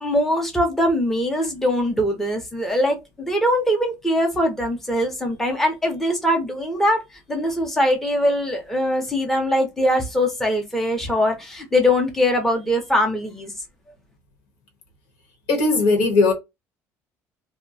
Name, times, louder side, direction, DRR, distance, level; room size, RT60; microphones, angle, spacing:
voice 1, 0.0-7.0 7.3-13.5, left 1 dB, 5° left, 0.6 m, -22 dB
voice 2, 15.5-16.3, left 3 dB, 85° left, 1.2 m, -18 dB
2.6 x 2.1 x 3.9 m
cardioid pair, 180°, 6 cm